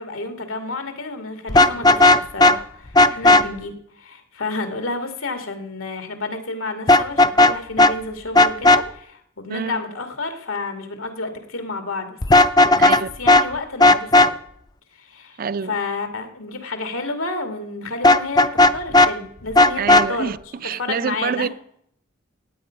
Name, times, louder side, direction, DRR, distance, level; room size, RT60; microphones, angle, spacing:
voice 1, 0.0-12.2 12.6-14.3 14.9-15.4 15.6-20.3 20.8-21.5, left 3 dB, 90° left, 2.3 m, -30 dB
Vehicle horn car horn honking, 1.5-2.6 2.9-3.4 6.9-7.5 7.8-7.9 8.3-8.8 12.2-13.0 13.3-13.4 13.8-14.3 18.0-19.1 19.5-20.1, left 2 dB, 20° left, 0.4 m, -12 dB
voice 2, 9.5-9.8 12.8-13.1 15.4-15.8 19.8-21.5, right 6 dB, 45° right, 0.4 m, -27 dB
16.5 x 8.9 x 5.2 m
head